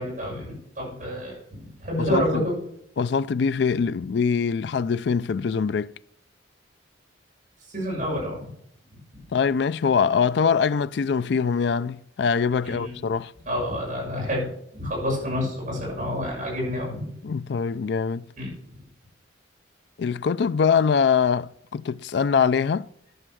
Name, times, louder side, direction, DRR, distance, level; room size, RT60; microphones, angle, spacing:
voice 1, 0.0-2.6 7.7-8.5 12.6-13.0 13.5-17.1 18.4-18.5, equal, 40° right, 6.7 m, -28 dB
voice 2, 1.9-2.4 3.0-5.9 9.3-13.3 17.2-18.2 20.0-22.9, left 6 dB, 60° left, 0.3 m, -23 dB
11.0 x 9.3 x 6.2 m
head